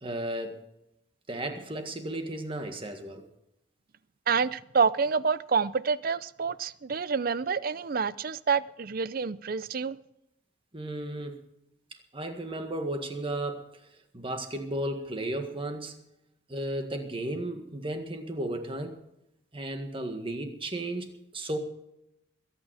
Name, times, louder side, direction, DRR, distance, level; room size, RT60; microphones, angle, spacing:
voice 1, 0.0-0.6 1.3-3.3 10.7-11.4 11.9-16.0 16.5-19.0 19.5-21.6, right 1 dB, 25° right, 5 dB, 1.8 m, -34 dB
voice 2, 4.3-10.0, right 5 dB, 45° right, 18 dB, 0.5 m, -28 dB
21.5 x 9.1 x 4.9 m, 0.82 s
head